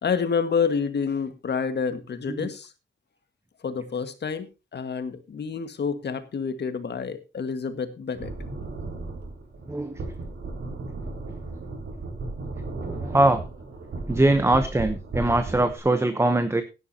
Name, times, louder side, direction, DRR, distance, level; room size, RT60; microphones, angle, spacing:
voice 1, 0.0-2.7 3.6-8.3, left 6 dB, 60° left, 9 dB, 1.8 m, -28 dB
sound 1, 8.1-15.8, right 2 dB, 80° right, 5.0 m, -35 dB
voice 2, 9.7-10.0 12.9-13.4 14.1-16.6, right 2 dB, 15° right, 10 dB, 0.9 m, -22 dB
16.5 x 11.0 x 2.9 m, 0.28 s
wide cardioid pair, 160°, 19 cm